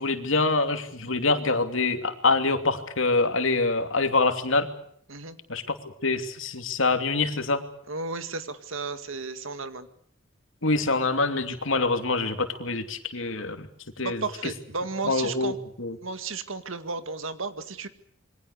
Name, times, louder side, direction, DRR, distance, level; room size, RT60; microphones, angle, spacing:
voice 1, 0.0-4.7 5.5-5.6 6.0-7.6 10.6-13.7 14.0-14.2 15.0-16.0, left 3 dB, 80° left, 7 dB, 2.9 m, -25 dB
voice 2, 7.9-9.9 14.0-15.6 16.0-17.9, right 4 dB, 85° right, 10 dB, 2.1 m, -33 dB
27.5 x 23.0 x 6.7 m, 0.64 s
head